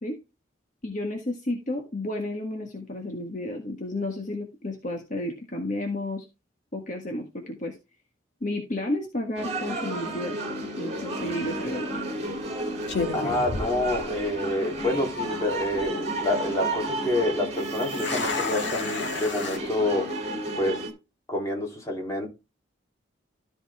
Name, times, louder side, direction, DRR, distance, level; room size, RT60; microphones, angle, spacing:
voice 1, 0.8-6.3 6.7-7.8 8.4-10.4 10.8-11.9, left 1 dB, 40° left, 1.6 m, -32 dB
sound 1, 9.4-20.9, right 1 dB, 30° right, 2.7 m, -32 dB
sound 2, 11.3-11.6 12.4-12.5 12.9-14.4 14.7-14.8 15.4-15.8 17.6-19.6, left 4 dB, 60° left, 2.2 m, -32 dB
voice 2, 13.1-20.1 20.5-20.8 21.3-22.3, left 1 dB, 15° left, 3.1 m, -27 dB
13.5 x 5.4 x 3.5 m
head